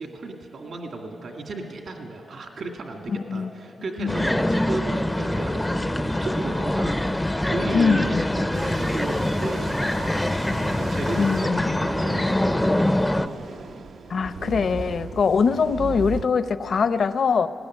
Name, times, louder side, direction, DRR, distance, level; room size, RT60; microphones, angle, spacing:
voice 1, 0.0-10.1 10.5-13.4, right 3 dB, 65° right, 2 dB, 2.2 m, -34 dB
voice 2, 3.1-3.5 4.0-4.1 7.7-8.2 11.2-11.9 14.1-17.5, left 5 dB, 60° left, 12 dB, 0.7 m, -22 dB
sound 1, 4.1-13.3, left 1 dB, 10° left, 0.5 m, -24 dB
sound 2, 8.5-16.2, right 5 dB, 80° right, 0.9 m, -38 dB
19.5 x 17.0 x 9.7 m, 2.7 s
wide cardioid pair, 130°, 0 cm